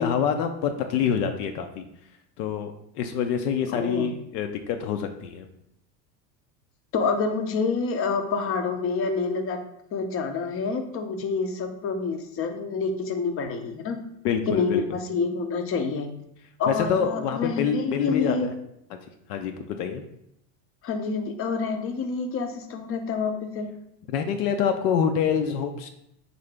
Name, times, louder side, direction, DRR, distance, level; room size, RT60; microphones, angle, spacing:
voice 1, 0.0-1.9 2.4-5.5 14.2-14.8 16.7-18.5 18.9-19.0 19.3-20.0 24.1-25.9, left 7 dB, 70° left, 6 dB, 0.6 m, -26 dB
voice 2, 3.7-4.1 6.9-9.6 9.9-14.0 14.5-16.1 16.6-18.5 20.8-23.7, left 4 dB, 30° left, 7 dB, 0.5 m, -27 dB
3.9 x 2.7 x 3.3 m, 0.78 s
hypercardioid pair, 100°, 50 cm